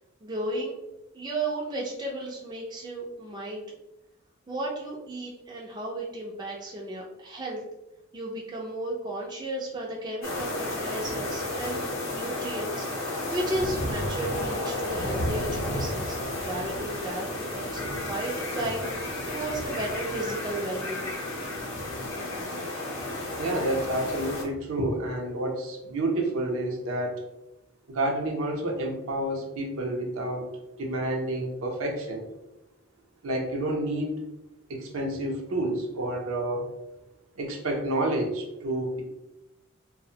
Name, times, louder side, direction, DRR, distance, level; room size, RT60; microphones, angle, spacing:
voice 1, 0.2-0.8 1.1-3.6 4.5-7.6 8.1-18.8 19.3-21.2, right 1 dB, 20° right, -3 dB, 0.3 m, -34 dB
sound 1, 10.2-24.4, left 1 dB, 70° left, 0.6 m, -32 dB
voice 2, 23.4-27.2 27.9-30.5 30.8-32.2 33.2-34.1 34.7-36.7 37.4-39.0, right 1 dB, 75° right, 0 dB, 0.5 m, -29 dB
2.4 x 2.0 x 2.7 m, 0.94 s
head